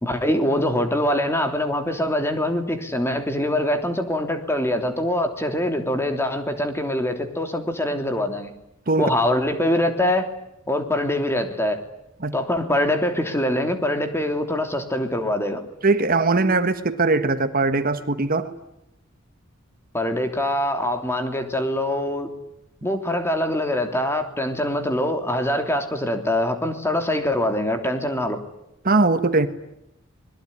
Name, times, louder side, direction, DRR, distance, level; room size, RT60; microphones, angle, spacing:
voice 1, 0.0-8.5 9.0-10.3 10.7-11.8 12.3-15.6 19.9-22.3 22.8-28.4, left 1 dB, 10° left, 6 dB, 3.2 m, -24 dB
voice 2, 15.8-18.5 28.8-29.5, right 3 dB, 45° right, 10 dB, 1.5 m, -20 dB
26.0 x 22.0 x 10.0 m, 0.84 s
head